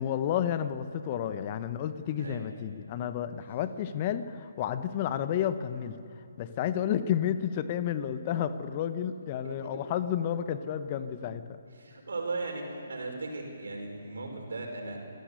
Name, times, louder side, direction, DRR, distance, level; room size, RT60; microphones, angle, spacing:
voice 1, 0.0-6.0 6.4-11.6, left 9 dB, 35° left, 11 dB, 1.2 m, -31 dB
voice 2, 9.4-9.8 11.8-15.0, right 3 dB, 70° right, 3 dB, 5.6 m, -37 dB
26.5 x 16.0 x 8.4 m, 2.7 s
figure-of-eight pair, 140°, 0 cm